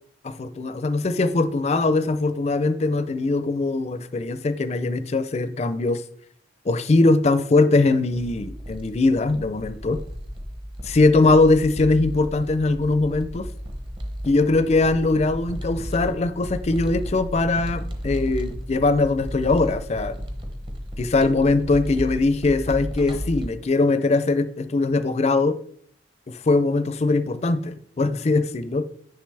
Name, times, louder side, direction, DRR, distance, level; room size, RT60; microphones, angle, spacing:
voice 1, 0.2-6.0 6.7-10.0 10.8-13.5 14.3-20.2 21.0-25.6 26.3-28.8, left 3 dB, 40° left, 13 dB, 0.4 m, -21 dB
sound 1, 8.1-23.5, equal, 30° right, 0.8 m, -34 dB
6.6 x 5.7 x 3.3 m, 0.62 s
head